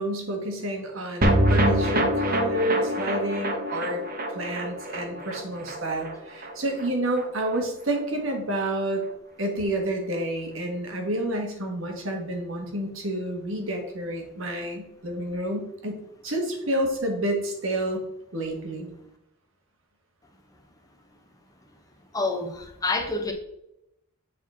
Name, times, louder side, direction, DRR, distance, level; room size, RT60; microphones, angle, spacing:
voice 1, 0.0-4.0 4.3-9.0 9.4-18.0 18.3-18.9, right 1 dB, 85° right, 2 dB, 1.6 m, -29 dB
sound 1, 1.2-7.6 7.9-8.0 8.3-8.4, right 1 dB, 45° right, 1.1 m, -26 dB
voice 2, 22.1-23.3, left 3 dB, 20° left, 4 dB, 0.9 m, -28 dB
7.9 x 4.2 x 4.3 m, 0.79 s
head